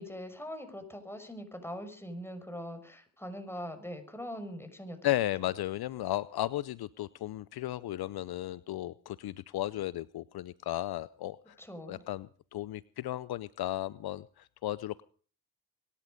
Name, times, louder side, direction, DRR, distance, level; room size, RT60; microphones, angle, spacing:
voice 1, 0.0-5.0 11.6-12.0, equal, 5° left, 7 dB, 5.8 m, -42 dB
voice 2, 5.0-11.6 11.9-15.0, left 14 dB, 65° left, 19 dB, 0.7 m, -35 dB
24.0 x 11.0 x 5.2 m, 0.43 s
supercardioid pair, 50°, 41 cm